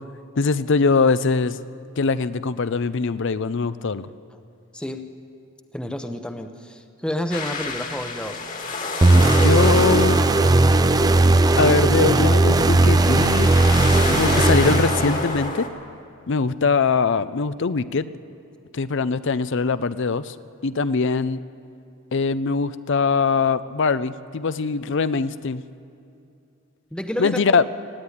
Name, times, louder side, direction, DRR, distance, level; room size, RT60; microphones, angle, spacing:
voice 1, 0.4-1.6 2.0-4.1 9.3-10.2 11.6-13.6 14.1-15.7 16.3-18.1 18.7-20.4 20.6-21.4 22.1-25.6 27.2-27.6, left 4 dB, 60° left, 15 dB, 0.6 m, -22 dB
voice 2, 4.7-5.1 5.7-8.4 26.9-27.4, left 1 dB, 5° left, 6 dB, 0.8 m, -30 dB
sound 1, 7.3-15.7, left 3 dB, 40° left, 1.9 m, -30 dB
sound 2, 9.0-15.5, right 2 dB, 20° right, 0.4 m, -17 dB
17.5 x 15.0 x 9.8 m, 2.5 s
head